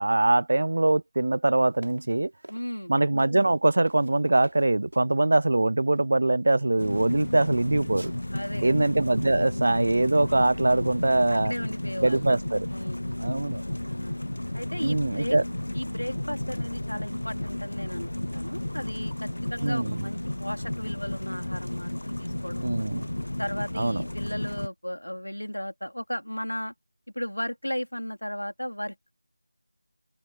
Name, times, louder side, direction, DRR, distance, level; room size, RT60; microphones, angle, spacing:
voice 1, 0.0-2.3 2.9-8.1 8.6-11.5 12.0-12.7 13.2-13.6 14.8-15.4 19.6-20.0 22.6-23.1 23.8-24.0, right 2 dB, 50° right, 0.7 m, -23 dB
sound 1, 1.8-5.1 5.8-6.0 6.6-7.0 7.4-8.7, right 1 dB, 70° right, 7.1 m, -50 dB
voice 2, 2.5-2.9 8.3-8.8 11.3-12.3 12.7-13.3 13.7-14.2 14.5-15.4 15.7-22.7 23.4-26.7 27.1-29.1, equal, 90° left, 3.0 m, -35 dB
sound 2, 6.8-24.7, left 1 dB, 70° left, 0.6 m, -33 dB
figure-of-eight pair, 170°, 0 cm